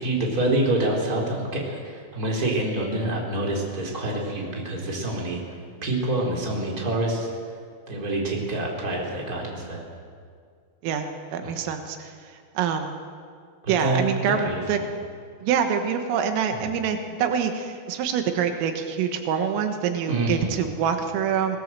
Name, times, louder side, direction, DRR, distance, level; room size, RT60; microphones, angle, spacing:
voice 1, 0.0-5.4 5.8-7.3 7.9-9.8 11.4-11.6 13.6-14.9 16.6-16.7 20.1-20.5, right 1 dB, 20° right, -2 dB, 4.2 m, -27 dB
voice 2, 10.8-12.1 12.6-13.0 13.7-14.8 15.4-21.6, right 7 dB, 85° right, 6 dB, 4.1 m, -25 dB
25.5 x 17.5 x 7.6 m, 2.2 s
omnidirectional pair, 5.8 m